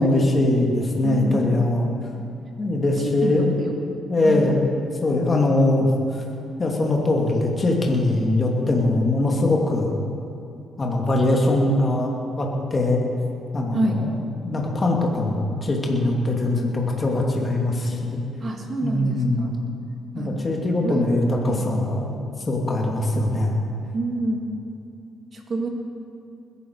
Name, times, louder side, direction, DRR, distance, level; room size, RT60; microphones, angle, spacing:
voice 1, 0.0-1.9 2.6-3.5 4.1-4.6 5.0-5.9 6.6-10.0 10.8-13.0 13.5-14.1 14.4-18.2 18.8-19.5 20.1-22.1 22.5-23.6, left 2 dB, 30° left, -1 dB, 2.5 m, -21 dB
voice 2, 1.0-1.5 3.0-4.5 13.7-14.0 18.4-19.6 20.2-21.1 21.5-21.7 23.9-24.5 25.3-25.7, right 2 dB, 45° right, 2 dB, 2.4 m, -28 dB
21.0 x 11.0 x 4.7 m, 2.7 s
cardioid pair, 90°, 0 cm